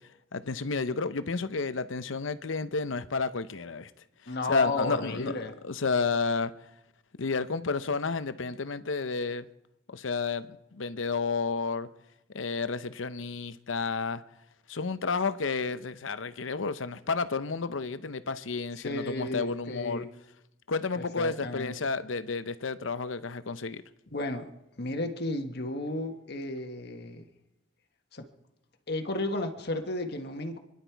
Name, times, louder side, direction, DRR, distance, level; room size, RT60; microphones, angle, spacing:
voice 1, 0.3-3.9 4.5-5.3 5.6-6.5 7.2-9.5 9.9-11.9 12.3-14.2 14.7-20.0 20.7-23.8, left 4 dB, 85° left, 0.8 m, -31 dB
voice 2, 4.3-5.5 18.8-20.1 20.9-21.7 24.1-24.5 24.8-27.2 28.1-28.3 28.9-30.6, left 2 dB, 60° left, 1.5 m, -33 dB
27.5 x 11.0 x 4.6 m
head